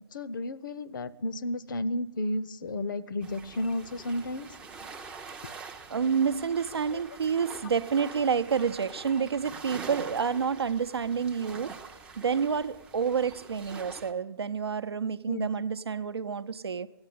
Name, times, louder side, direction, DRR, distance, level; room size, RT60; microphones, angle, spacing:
voice 1, 0.1-4.5 6.9-7.0 15.3-15.5, left 1 dB, 50° left, 16 dB, 0.7 m, -32 dB
sound 1, 3.2-14.1, right 5 dB, 5° right, 0.5 m, -45 dB
voice 2, 5.9-16.9, right 6 dB, 75° right, 13 dB, 0.7 m, -29 dB
14.0 x 9.6 x 8.5 m, 1.1 s
figure-of-eight pair, 145°, 13 cm